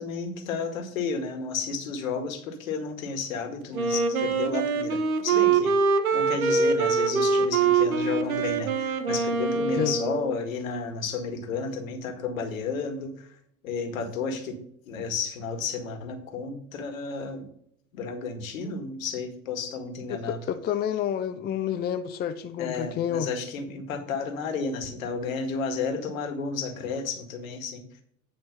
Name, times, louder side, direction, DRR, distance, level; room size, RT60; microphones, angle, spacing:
voice 1, 0.0-5.8 6.1-13.3 13.6-17.5 17.9-20.4 22.6-27.8, left 4 dB, 65° left, 2.0 m, -32 dB
Wind instrument woodwind instrument, 3.7-10.4, right 5 dB, 75° right, 1.2 m, -24 dB
voice 2, 20.1-23.3, left 9 dB, 25° left, 0.7 m, -29 dB
9.3 x 5.1 x 5.3 m
figure-of-eight pair, 85°, 43 cm